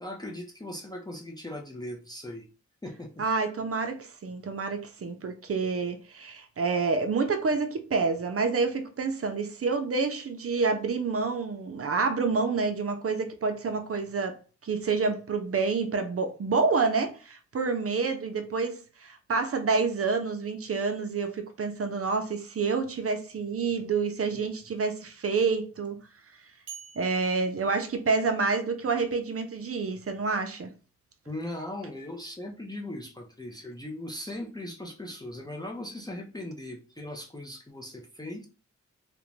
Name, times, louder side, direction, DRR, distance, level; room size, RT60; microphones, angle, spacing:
voice 1, 0.0-2.5 2.8-3.1 31.3-38.5, left 1 dB, 15° left, 0.4 m, -39 dB
voice 2, 3.2-14.4 14.6-26.0 27.0-30.7, right 4 dB, 50° right, 0.5 m, -28 dB
sound 1, 26.7-28.7, right 8 dB, 70° right, 0.9 m, -49 dB
2.5 x 2.1 x 3.0 m
wide cardioid pair, 100°, 30 cm